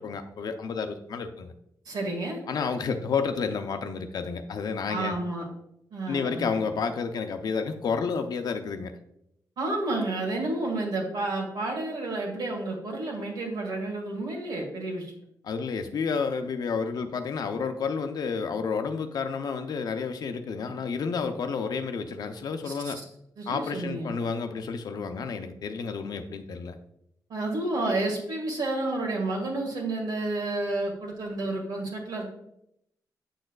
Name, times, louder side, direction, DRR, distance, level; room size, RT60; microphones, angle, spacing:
voice 1, 0.0-1.5 2.5-5.1 6.1-8.9 15.4-23.0 23.5-26.8, left 5 dB, 70° left, 8 dB, 0.6 m, -30 dB
voice 2, 1.9-2.4 4.9-5.5 5.9-6.6 9.6-15.1 22.6-22.9 23.4-24.1 27.3-32.3, right 2 dB, 85° right, -1 dB, 1.9 m, -30 dB
7.5 x 6.5 x 2.3 m, 0.76 s
wide cardioid pair, 120°, 7 cm